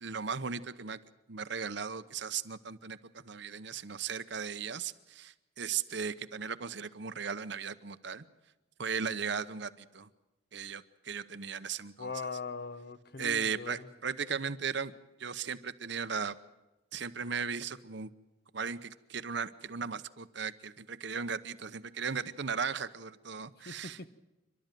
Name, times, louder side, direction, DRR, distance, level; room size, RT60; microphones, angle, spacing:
voice 1, 0.0-1.0 1.3-3.0 3.2-8.2 8.8-10.1 10.5-12.1 13.2-14.9 15.2-16.4 16.9-18.1 18.5-24.1, right 6 dB, 60° right, 13 dB, 0.8 m, -37 dB
voice 2, 12.0-13.9 23.6-24.1, left 4 dB, 50° left, 13 dB, 0.9 m, -41 dB
28.0 x 12.0 x 9.1 m, 1.0 s
head